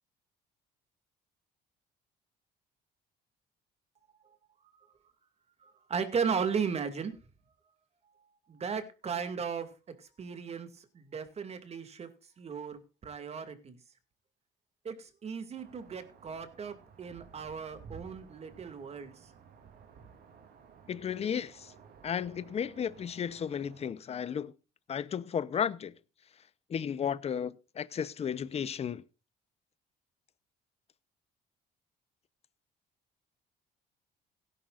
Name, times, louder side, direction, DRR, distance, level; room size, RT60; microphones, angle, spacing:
voice 1, 5.6-7.1 8.5-9.7 10.2-10.7 10.9-12.1 12.4-13.8 14.8-19.1, right 6 dB, 40° right, 2.4 m, -36 dB
sound 1, 15.6-23.9, right 6 dB, 65° right, 3.3 m, -55 dB
voice 2, 20.9-21.7 22.0-24.5 24.9-25.9 26.7-29.0, left 8 dB, 40° left, 0.8 m, -34 dB
17.5 x 11.0 x 2.6 m
cardioid pair, 110°, 17 cm